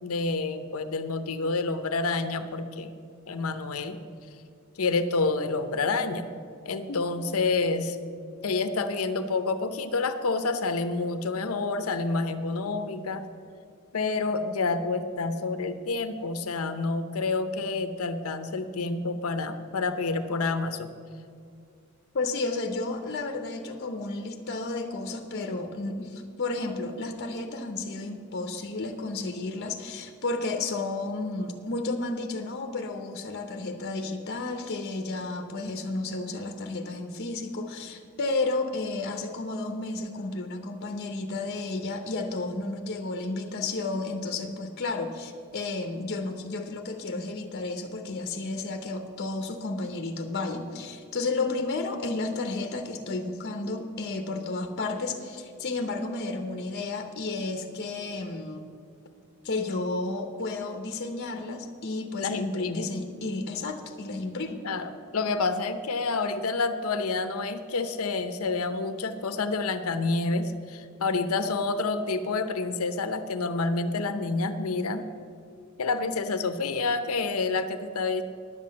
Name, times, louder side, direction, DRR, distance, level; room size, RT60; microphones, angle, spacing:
voice 1, 0.0-2.9 3.3-4.0 4.8-6.3 6.6-8.0 8.4-13.2 13.9-20.9 62.2-62.9 64.6-75.1 75.8-78.2, left 3 dB, 85° left, 10 dB, 0.7 m, -28 dB
voice 2, 22.1-58.7 59.4-64.6, left 3 dB, 50° left, 5 dB, 0.8 m, -32 dB
10.5 x 7.7 x 7.3 m, 2.4 s
head